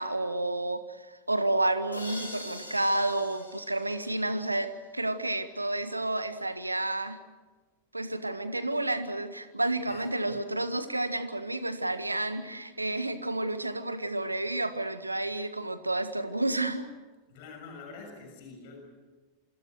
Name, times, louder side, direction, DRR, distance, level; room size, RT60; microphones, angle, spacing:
voice 1, 0.0-7.2 7.9-16.9, right 2 dB, 85° right, 11 dB, 1.7 m, -30 dB
sound 1, 1.9-4.8, left 1 dB, 80° left, 6.5 m, -44 dB
voice 2, 9.9-10.4 17.3-18.9, left 4 dB, 50° left, 3 dB, 6.8 m, -46 dB
27.0 x 26.0 x 6.6 m, 1.3 s
figure-of-eight pair, 90°, 0 cm